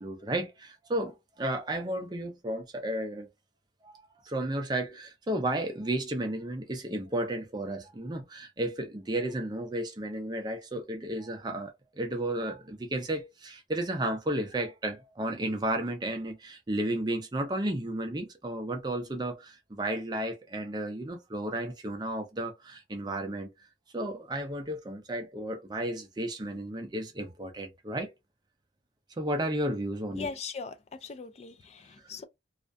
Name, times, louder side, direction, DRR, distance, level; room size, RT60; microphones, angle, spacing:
voice 1, 0.0-3.3 3.8-3.9 4.3-23.5 23.9-28.1 29.2-30.3, right 1 dB, 25° right, 0.5 m, -33 dB
voice 2, 30.1-32.2, left 5 dB, 35° left, 0.3 m, -40 dB
2.4 x 2.1 x 2.5 m
head